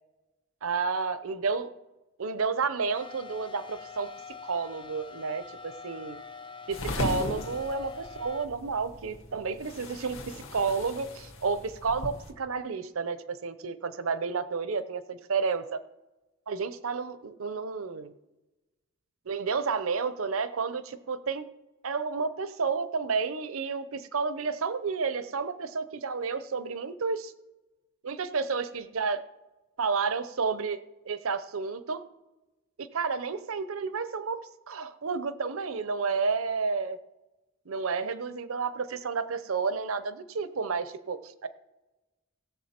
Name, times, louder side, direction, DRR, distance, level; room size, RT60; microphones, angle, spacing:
voice 1, 0.6-1.7 2.2-4.1 4.4-6.2 6.7-15.8 16.5-18.1 19.3-21.4 21.8-27.3 28.0-29.2 29.8-30.8 31.0-32.0 32.8-34.4 34.7-37.0 37.7-41.5, right 5 dB, 80° right, 13 dB, 0.7 m, -31 dB
sound 1, 2.9-8.5, left 5 dB, 25° left, 0.4 m, -45 dB
sound 2, 6.7-12.3, left 2 dB, 75° left, 1.8 m, -38 dB
17.0 x 7.1 x 4.4 m, 1.0 s
head